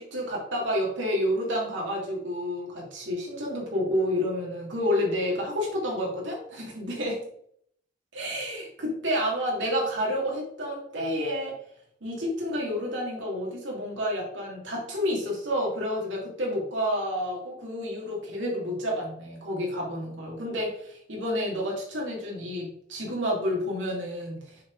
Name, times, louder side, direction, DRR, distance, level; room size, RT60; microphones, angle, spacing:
voice 1, 0.0-7.2 8.1-11.5 12.0-24.6, equal, 80° right, -2 dB, 2.8 m, -29 dB
7.1 x 5.1 x 4.8 m, 0.68 s
head